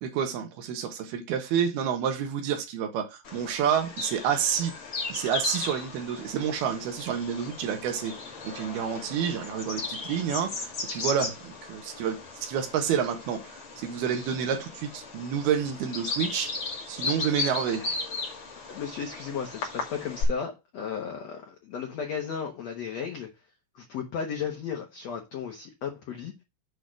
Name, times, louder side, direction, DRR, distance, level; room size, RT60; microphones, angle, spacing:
voice 1, 0.0-4.7 5.1-8.1 8.4-16.6 16.9-17.8, right 8 dB, 70° right, 3.1 m, -29 dB
Bird vocalization bird call bird song, 3.2-20.2, left 4 dB, 40° left, 2.4 m, -36 dB
voice 2, 18.7-23.3 23.7-26.4, left 7 dB, 90° left, 1.4 m, -35 dB
8.4 x 4.1 x 6.4 m
omnidirectional pair, 5.1 m